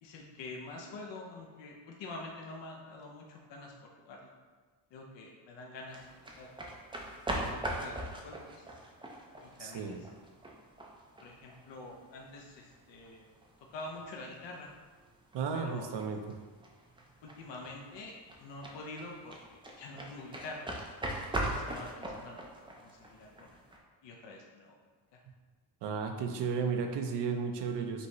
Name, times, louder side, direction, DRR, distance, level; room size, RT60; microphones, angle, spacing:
voice 1, 0.0-4.3 4.9-6.1 6.4-6.5 7.3-8.7 9.4-10.1 11.2-13.3 13.7-14.7 15.5-15.9 17.2-20.7 21.4-22.6 22.8-23.6 24.0-24.8 25.1-25.2, left 2 dB, 70° left, -1 dB, 0.8 m, -46 dB
sound 1, 5.9-23.8, right 1 dB, 10° right, 0.4 m, -41 dB
voice 2, 9.6-10.0 15.3-16.2 25.8-28.1, right 5 dB, 65° right, 5 dB, 0.6 m, -33 dB
5.3 x 2.7 x 3.0 m, 1.4 s
cardioid pair, 130°, 45 cm